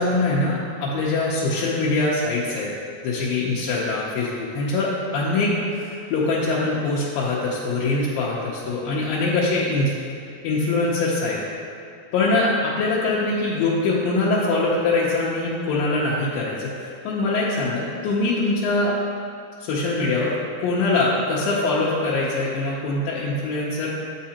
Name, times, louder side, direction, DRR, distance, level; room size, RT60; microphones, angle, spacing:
voice 1, 0.0-2.7 3.0-9.9 10.4-11.4 12.1-18.9 19.6-20.3 20.6-23.9, left 2 dB, 75° left, -6 dB, 2.3 m, -23 dB
8.4 x 5.6 x 2.8 m, 2.5 s
omnidirectional pair, 4.3 m